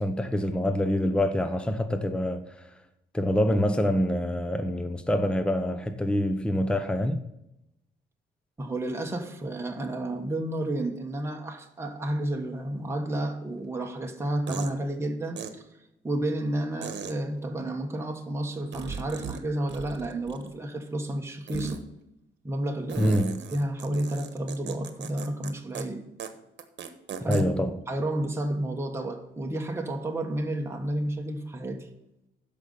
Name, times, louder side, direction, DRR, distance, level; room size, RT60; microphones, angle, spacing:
voice 1, 0.0-2.7 3.1-7.2 23.0-23.4 27.3-27.8, equal, 5° left, 0.8 m, -26 dB
voice 2, 8.6-15.6 16.0-21.8 22.4-23.1 23.5-26.0 27.2-27.4 27.9-31.9, right 1 dB, 15° right, 1.3 m, -31 dB
sound 1, 13.6-13.7 14.5-14.7 15.4-15.5 16.8-17.1 18.7-19.4 19.7-20.6 21.5-21.8 22.9-25.5 25.8-25.9 26.2-26.3 26.6-27.4, right 7 dB, 65° right, 1.2 m, -37 dB
13.0 x 5.3 x 5.6 m
cardioid pair, 90°, 20 cm